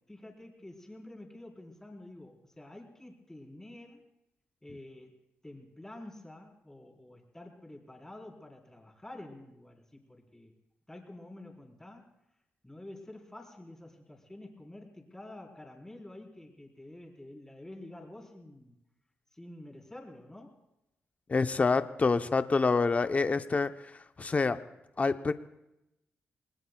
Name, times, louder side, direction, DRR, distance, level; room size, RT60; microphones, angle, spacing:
voice 1, 0.1-4.0 4.6-5.2 5.4-10.5 10.9-12.1 12.6-18.8 19.3-20.6, left 1 dB, 10° left, 0 dB, 4.0 m, -49 dB
voice 2, 21.3-24.6 25.0-25.3, left 4 dB, 35° left, 10 dB, 0.7 m, -27 dB
27.5 x 20.0 x 2.3 m, 0.89 s
cardioid pair, 80°, 4 cm